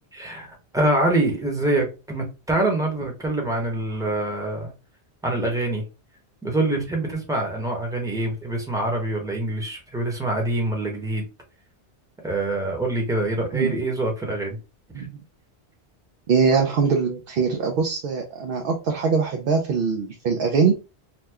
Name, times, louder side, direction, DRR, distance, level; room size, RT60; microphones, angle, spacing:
voice 1, 0.1-4.7 5.2-5.8 6.4-11.2 12.2-14.6 15.0-15.1, right 2 dB, 5° right, 0 dB, 0.9 m, -25 dB
voice 2, 16.3-20.7, right 5 dB, 60° right, 3 dB, 0.7 m, -22 dB
2.9 x 2.1 x 3.4 m, 0.30 s
omnidirectional pair, 1.1 m